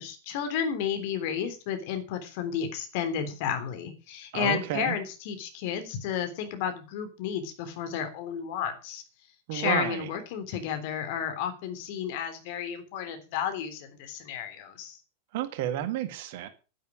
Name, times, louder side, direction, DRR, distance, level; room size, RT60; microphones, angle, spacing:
voice 1, 0.0-9.0 9.5-15.0, left 8 dB, 50° left, 3.4 m, -32 dB
voice 2, 4.3-5.0 9.5-10.1 15.3-16.5, right 12 dB, 50° right, 1.7 m, -31 dB
11.0 x 10.5 x 6.2 m
figure-of-eight pair, 90°, 0 cm